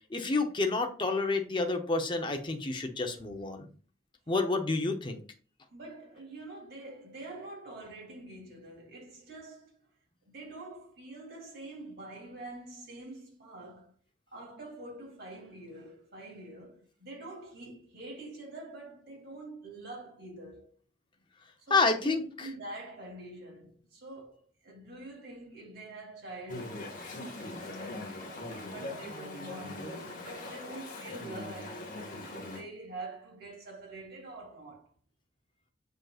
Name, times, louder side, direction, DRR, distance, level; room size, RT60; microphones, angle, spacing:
voice 1, 0.1-3.7 4.3-5.2 21.7-22.5, left 3 dB, 25° left, 0.7 m, -29 dB
voice 2, 5.7-9.8 10.3-13.9 14.3-20.7 21.7-26.8 27.5-28.1 28.5-34.9, right 2 dB, 55° right, 2.7 m, -46 dB
Chatter / Stream, 26.5-32.6, left 2 dB, 45° left, 1.7 m, -41 dB
7.6 x 5.2 x 2.4 m
head